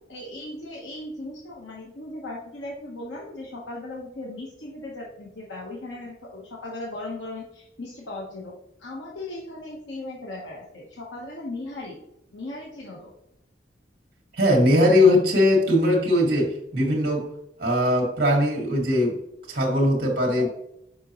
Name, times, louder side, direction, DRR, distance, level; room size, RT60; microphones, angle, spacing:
voice 1, 0.1-12.0 12.3-13.1 20.4-20.5, left 2 dB, 90° left, -3 dB, 1.1 m, -37 dB
voice 2, 14.4-17.2 17.6-19.2 19.5-20.5, left 1 dB, 55° right, -1 dB, 1.7 m, -20 dB
6.7 x 5.1 x 3.0 m, 0.79 s
head